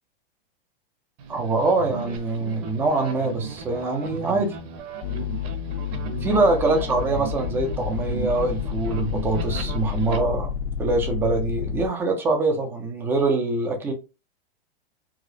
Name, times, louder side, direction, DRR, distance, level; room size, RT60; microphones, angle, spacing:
sound 1, 1.2-10.2, right 5 dB, 35° right, 0.8 m, -35 dB
voice 1, 1.3-4.6 6.2-10.5 10.8-13.9, right 3 dB, 5° right, 0.4 m, -24 dB
sound 2, 5.0-11.9, left 9 dB, 65° left, 0.4 m, -30 dB
4.7 x 2.0 x 2.6 m
supercardioid pair, 155°, 30 cm